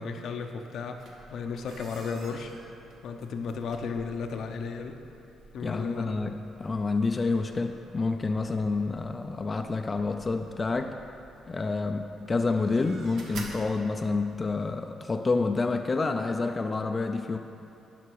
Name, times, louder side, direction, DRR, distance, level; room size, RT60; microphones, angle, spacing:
voice 1, 0.0-2.5 3.0-5.0 5.5-6.2, left 5 dB, 70° left, 5 dB, 0.7 m, -34 dB
sound 1, 0.9-14.5, right 2 dB, 70° right, 1.2 m, -50 dB
voice 2, 5.6-10.9 11.5-17.4, left 3 dB, 30° left, 5 dB, 0.4 m, -28 dB
11.0 x 5.9 x 4.7 m, 2.7 s
cardioid pair, 90°, 0 cm